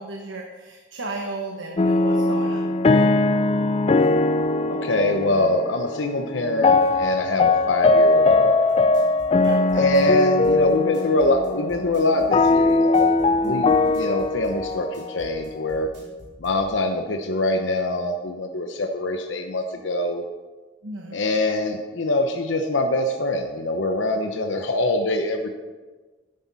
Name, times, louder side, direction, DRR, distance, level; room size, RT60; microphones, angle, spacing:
voice 1, 0.0-2.7 9.4-10.0 13.4-13.9 20.8-21.2, right 2 dB, 90° right, 1 dB, 1.1 m, -35 dB
sound 1, 1.8-15.8, left 3 dB, 30° left, 0.4 m, -20 dB
voice 2, 4.7-8.7 9.7-15.9 16.4-20.2 21.1-25.5, left 2 dB, 85° left, 4 dB, 0.9 m, -24 dB
sound 2, 8.7-16.6, equal, 65° right, 3.8 m, -45 dB
11.5 x 10.0 x 4.1 m, 1.3 s
head